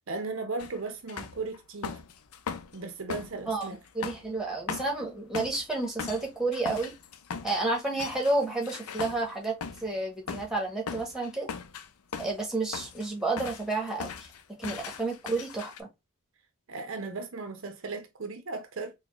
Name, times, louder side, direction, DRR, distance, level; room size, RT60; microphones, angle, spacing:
voice 1, 0.1-2.0 2.7-3.8 16.7-18.9, right 3 dB, 65° right, 0.7 m, -36 dB
sound 1, 0.6-0.8 1.1-2.8 3.1-9.9 10.3-10.5 10.9-12.4 12.7-13.1 13.4-15.8, left 6 dB, 85° left, 0.5 m, -39 dB
voice 2, 3.9-6.9 7.4-11.5 12.2-14.1 14.6-15.9, right 2 dB, ahead, 1.4 m, -30 dB
3.8 x 2.2 x 3.5 m
head